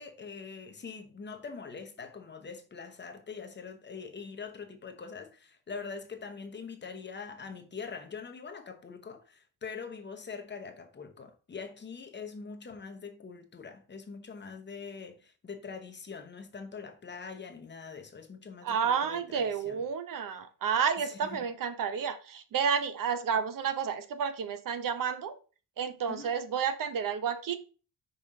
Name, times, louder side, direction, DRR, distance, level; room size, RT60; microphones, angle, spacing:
voice 1, 0.0-19.8 21.0-21.4 26.1-26.3, left 5 dB, 25° left, 0.9 m, -43 dB
voice 2, 18.6-25.3 25.8-27.6, right 7 dB, 55° right, 0.9 m, -31 dB
5.5 x 4.2 x 5.3 m
cardioid pair, 150°, 40 cm